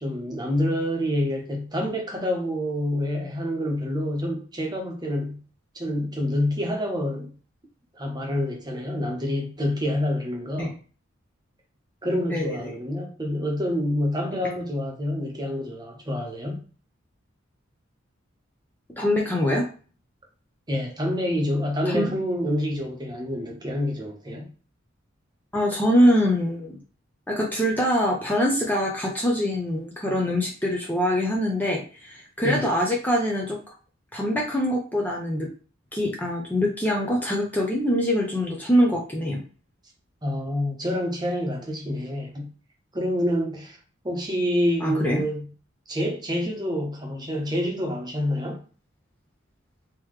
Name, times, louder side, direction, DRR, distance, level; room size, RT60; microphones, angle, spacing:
voice 1, 0.0-5.4 5.7-7.3 7.9-10.8 12.0-16.6 20.7-24.5 32.4-32.7 40.2-42.5 42.9-43.8 44.0-45.4 45.9-48.6, left 1 dB, 20° right, 1.0 m, -27 dB
voice 2, 12.3-12.7 19.0-19.7 21.9-22.1 25.5-26.8 27.3-33.6 34.1-35.5 35.9-39.4 44.8-45.2, equal, 10° left, 0.7 m, -24 dB
3.7 x 3.0 x 3.2 m
head